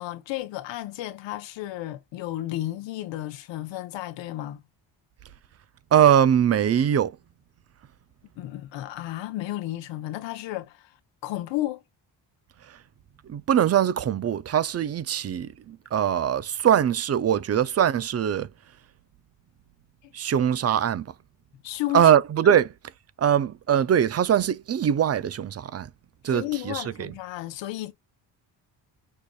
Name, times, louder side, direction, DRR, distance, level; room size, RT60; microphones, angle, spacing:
voice 1, 0.0-4.6 8.4-10.9 11.2-11.8 20.0-20.1 21.6-22.1 22.4-22.6 26.2-27.9, left 15 dB, 80° left, 1.0 m, -33 dB
voice 2, 5.9-7.2 13.3-18.5 20.1-21.1 21.9-22.7 23.2-25.9 26.2-27.1, right 9 dB, 35° right, 0.5 m, -22 dB
6.5 x 2.6 x 2.3 m
cardioid pair, 95°, 44 cm